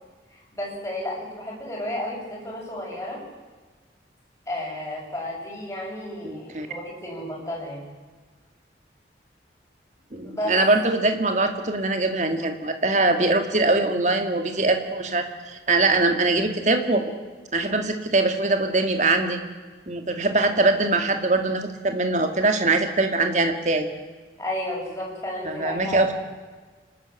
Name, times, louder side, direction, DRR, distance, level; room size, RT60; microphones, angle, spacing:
voice 1, 0.3-3.2 4.5-7.9 10.2-10.5 24.4-26.0, left 1 dB, 15° left, -4 dB, 8.0 m, -32 dB
voice 2, 6.2-6.7 10.1-17.0 17.5-19.4 19.9-23.9 25.5-26.1, right 2 dB, 40° right, 6 dB, 2.2 m, -22 dB
28.0 x 13.0 x 9.0 m, 1.4 s
head